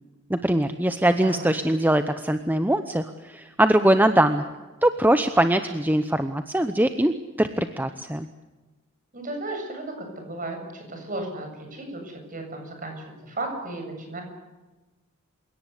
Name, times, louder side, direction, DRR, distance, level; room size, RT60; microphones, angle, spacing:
voice 1, 0.3-4.4 4.8-8.3, right 1 dB, 10° right, 9 dB, 0.9 m, -22 dB
voice 2, 9.1-13.0 13.2-14.2, right 2 dB, 40° right, 4 dB, 7.7 m, -34 dB
28.5 x 18.0 x 8.3 m, 1.2 s
head